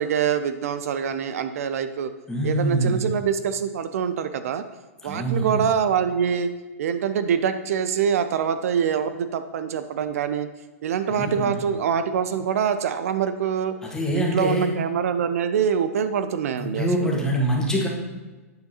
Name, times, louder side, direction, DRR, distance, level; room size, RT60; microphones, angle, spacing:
voice 1, 0.0-2.1 2.4-4.6 5.0-6.5 6.8-10.5 10.8-13.7 14.1-17.1, right 7 dB, 70° right, 10 dB, 0.4 m, -25 dB
voice 2, 2.3-3.1 5.0-5.6 11.1-11.5 13.8-14.7 16.6-17.9, right 1 dB, 5° left, -2 dB, 1.5 m, -24 dB
9.2 x 4.7 x 2.9 m, 1.2 s
hypercardioid pair, 120°, 8 cm